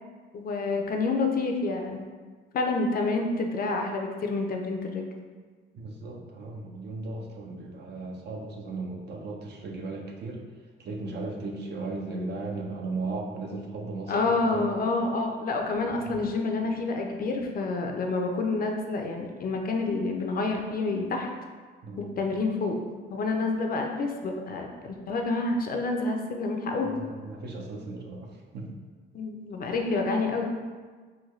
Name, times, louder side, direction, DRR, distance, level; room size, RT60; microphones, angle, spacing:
voice 1, 0.3-2.1 2.5-5.0 14.1-21.3 22.0-22.8 23.1-26.9 29.1-30.5, left 3 dB, 50° left, 3 dB, 0.5 m, -28 dB
voice 2, 5.7-10.4 10.8-14.7 16.0-16.2 21.8-22.1 26.7-28.8, right 3 dB, 55° right, 1 dB, 0.6 m, -36 dB
3.8 x 2.2 x 3.1 m, 1.5 s
cardioid pair, 90°, 20 cm